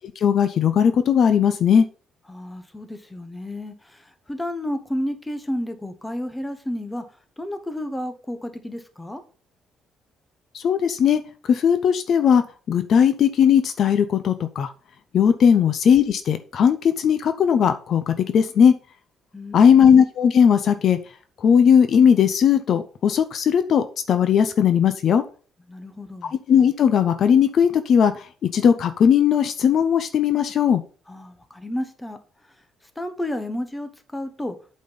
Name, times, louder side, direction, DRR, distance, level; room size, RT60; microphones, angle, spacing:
voice 1, 0.2-1.9 10.5-11.2 11.5-12.4 12.7-14.7 15.1-18.7 19.5-21.0 21.4-25.2 26.5-30.8, left 7 dB, 50° left, 10 dB, 0.7 m, -18 dB
voice 2, 2.3-7.0 7.4-9.2 19.3-19.8 25.7-26.3 31.1-32.2 33.0-34.6, left 1 dB, 10° left, 8 dB, 1.0 m, -31 dB
8.4 x 4.3 x 5.5 m, 0.39 s
cardioid pair, 145°, 0 cm